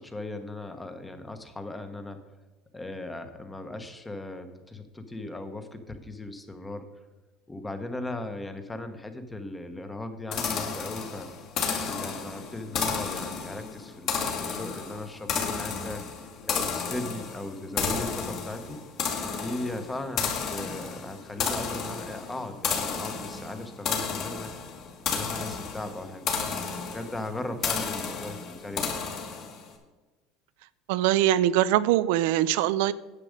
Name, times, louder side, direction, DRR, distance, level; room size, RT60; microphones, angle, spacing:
voice 1, 0.0-2.2 2.7-6.9 7.5-11.3 11.8-16.0 16.4-18.8 19.4-24.5 25.1-26.5 26.9-28.9, left 2 dB, 10° left, 8 dB, 0.9 m, -37 dB
sound 1, 10.3-29.7, left 5 dB, 45° left, 1.9 m, -32 dB
voice 2, 30.9-32.9, right 13 dB, 80° right, 15 dB, 0.4 m, -22 dB
9.8 x 7.6 x 5.1 m, 1.2 s
cardioid pair, 150°, 0 cm